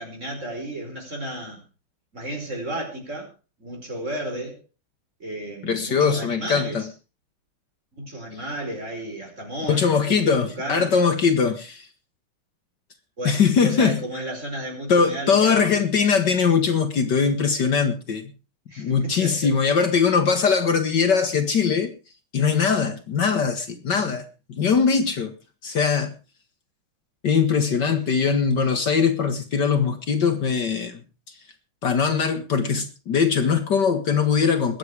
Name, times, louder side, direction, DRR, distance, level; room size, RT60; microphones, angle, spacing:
voice 1, 0.0-1.6 2.1-3.3 3.6-4.6 5.2-6.9 8.0-11.0 13.2-16.2 18.7-19.5 23.9-24.2, right 1 dB, 35° right, 5.2 m, -33 dB
voice 2, 5.6-6.8 9.7-11.9 13.3-14.0 14.9-18.3 18.8-21.9 22.3-25.3 25.6-26.1 27.2-31.0 31.8-34.8, left 6 dB, 55° left, 1.9 m, -21 dB
21.5 x 8.6 x 4.7 m
omnidirectional pair, 2.3 m